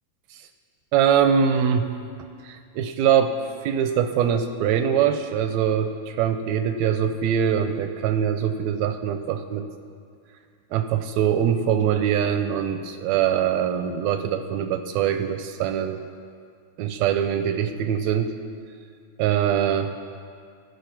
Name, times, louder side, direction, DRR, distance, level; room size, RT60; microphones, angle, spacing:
voice 1, 0.9-1.9 2.4-3.4 3.6-9.7 10.7-16.0 16.8-18.3 19.2-19.9, right 8 dB, 80° right, 8 dB, 1.7 m, -23 dB
15.5 x 5.7 x 5.8 m, 2.3 s
omnidirectional pair, 3.4 m